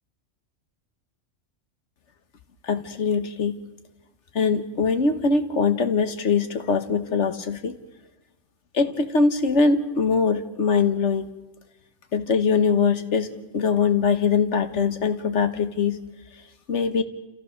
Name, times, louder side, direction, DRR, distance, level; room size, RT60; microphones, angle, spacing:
voice 1, 2.6-3.6 4.3-7.8 8.7-11.3 12.1-16.0 16.7-17.0, left 5 dB, 65° left, 9 dB, 1.6 m, -22 dB
28.5 x 15.0 x 6.5 m, 1.1 s
omnidirectional pair, 1.3 m